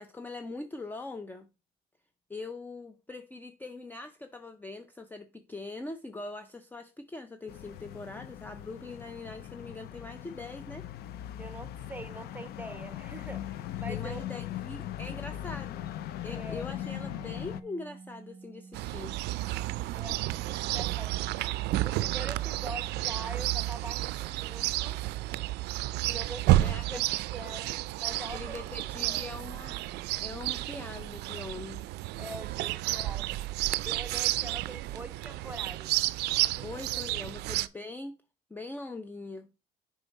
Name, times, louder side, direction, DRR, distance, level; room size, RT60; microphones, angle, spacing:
voice 1, 0.0-1.5 2.3-10.8 13.9-15.9 16.2-19.2 26.6-27.0 28.1-29.8 30.2-31.9 36.6-38.1 38.5-39.5, left 3 dB, 10° left, 0.5 m, -42 dB
sound 1, 7.5-17.6, left 12 dB, 70° left, 0.5 m, -39 dB
voice 2, 11.4-14.2 16.3-16.7 19.9-25.0 26.0-27.0 27.3-27.7 28.0-29.2 32.2-33.5 33.8-35.9 36.4-37.3, right 1 dB, 10° right, 1.0 m, -44 dB
Mallet percussion, 16.8-24.4, right 4 dB, 30° right, 1.1 m, -53 dB
Chirp tweet, 18.7-37.7, right 16 dB, 80° right, 0.4 m, -31 dB
6.7 x 4.7 x 4.1 m
cardioid pair, 110°, 17 cm